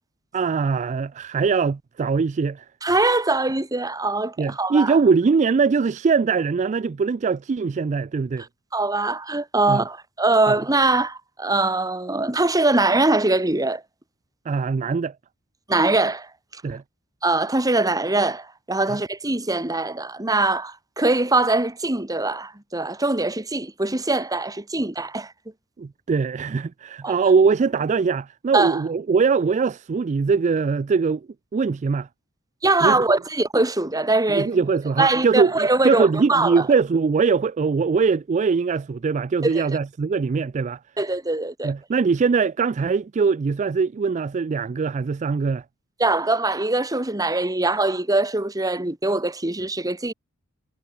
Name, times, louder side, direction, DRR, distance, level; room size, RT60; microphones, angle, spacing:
voice 1, 0.3-2.7 4.4-8.4 9.7-9.8 10.5-10.6 14.5-15.1 16.6-16.8 18.9-19.0 25.8-32.1 32.8-33.0 34.3-40.8 41.6-45.6, right 5 dB, 35° right, 0.3 m, -22 dB
voice 2, 2.8-5.0 8.7-13.8 15.7-16.6 17.2-25.3 27.0-27.2 28.5-28.8 32.6-34.5 35.0-36.6 39.4-39.6 41.0-41.7 46.0-50.1, right 2 dB, 15° right, 1.6 m, -22 dB
head